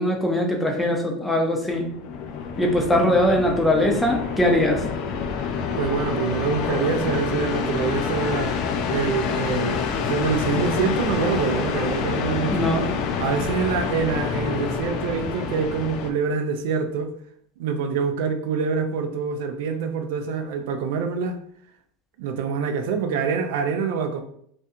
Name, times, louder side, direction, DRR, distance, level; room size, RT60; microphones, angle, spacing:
voice 1, 0.0-1.9 2.6-4.8 12.5-12.8, left 1 dB, 10° left, 1 dB, 0.5 m, -21 dB
sound 1, 1.7-16.1, left 5 dB, 60° left, 0.4 m, -27 dB
voice 2, 5.8-8.6 8.9-12.7 13.2-17.1 17.6-21.4 22.2-24.2, right 6 dB, 75° right, 7 dB, 0.3 m, -25 dB
2.5 x 2.2 x 2.7 m, 0.67 s
supercardioid pair, 125°, 0 cm